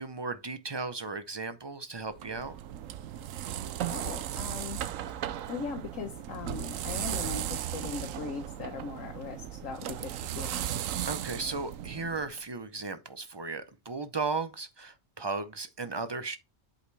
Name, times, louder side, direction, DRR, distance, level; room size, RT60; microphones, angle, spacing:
voice 1, 0.0-2.6 11.0-16.4, right 4 dB, 35° right, 0.4 m, -35 dB
sound 1, 2.1-12.4, right 11 dB, 80° right, 1.0 m, -36 dB
voice 2, 3.9-4.8 5.1-10.7, left 5 dB, 80° left, 1.3 m, -39 dB
8.1 x 5.0 x 3.3 m
omnidirectional pair, 1.3 m